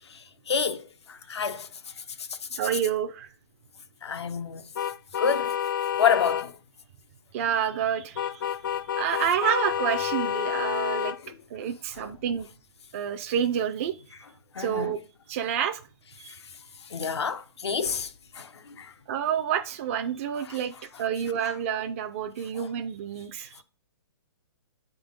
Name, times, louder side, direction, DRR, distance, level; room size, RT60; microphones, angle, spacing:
voice 1, 0.0-2.6 4.0-4.6 5.2-5.6 6.0-6.5 11.2-11.3 11.6-12.1 14.5-14.9 16.3-16.4 16.8-18.9 20.5-20.6 21.4-21.5 22.5-22.7, left 6 dB, 90° left, 0.9 m, -30 dB
voice 2, 2.6-3.3 7.3-8.4 9.0-11.2 11.5-12.5 12.9-14.0 14.6-15.0 15.3-15.8 16.2-16.3 19.1-20.7 21.0-23.5, right 9 dB, 30° right, 0.4 m, -28 dB
Car Horn Irritated driver stuck in traffic, 4.7-6.5 8.2-11.2, left 9 dB, 55° left, 0.4 m, -29 dB
7.8 x 3.6 x 5.1 m
hypercardioid pair, 160°, 14 cm